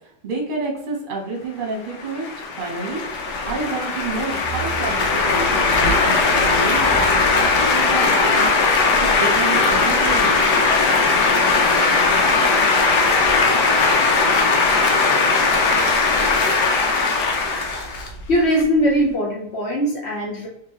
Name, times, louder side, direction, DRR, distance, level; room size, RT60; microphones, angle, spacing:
voice 1, 0.2-3.0 3.4-8.5 9.0-10.6 12.3-12.6, right 3 dB, 35° right, 0 dB, 1.0 m, -29 dB
sound 1, 1.9-18.6, left 3 dB, 90° left, 1.4 m, -18 dB
voice 2, 18.3-20.5, equal, 55° left, -1 dB, 0.8 m, -20 dB
4.4 x 2.9 x 3.0 m, 0.77 s
omnidirectional pair, 1.8 m